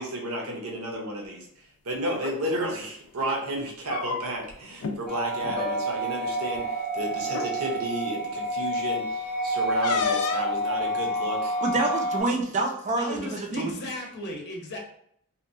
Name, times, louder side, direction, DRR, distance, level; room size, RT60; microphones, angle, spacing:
voice 1, 0.0-1.5 1.8-11.5, right 1 dB, 70° right, -1 dB, 0.7 m, -32 dB
sound 1, 2.1-2.4 3.6-4.5 4.8-5.0 5.4-5.6 6.6-6.7 7.3-7.5 9.8-10.5, left 5 dB, 85° left, 0.4 m, -30 dB
sound 2, 5.1-12.2, equal, 5° left, 0.7 m, -29 dB
Piano, 5.6-9.5 9.9-10.3, equal, 90° right, 1.5 m, -41 dB
voice 2, 11.6-13.7, right 2 dB, 35° right, 2 dB, 0.4 m, -27 dB
voice 3, 13.0-14.8, left 1 dB, 50° left, 0 dB, 0.6 m, -36 dB
2.9 x 2.1 x 2.6 m, 0.67 s
head